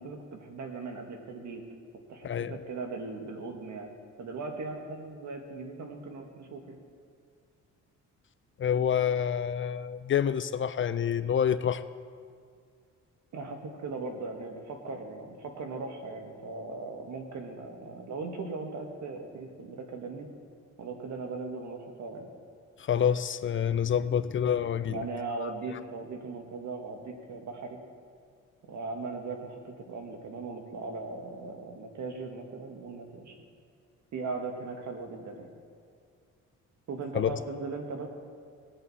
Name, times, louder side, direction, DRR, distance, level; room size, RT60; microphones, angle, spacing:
voice 1, 0.0-1.6 2.1-3.9 4.2-6.8 13.3-20.3 20.8-22.3 24.9-27.8 28.7-33.3 34.1-35.5 36.9-38.1, right 3 dB, 65° right, 1.8 m, -38 dB
voice 2, 8.6-11.8 22.9-25.0 25.4-25.5 37.1-37.3, left 8 dB, 40° left, 0.5 m, -27 dB
19.5 x 7.9 x 4.2 m
cardioid pair, 90°, 30 cm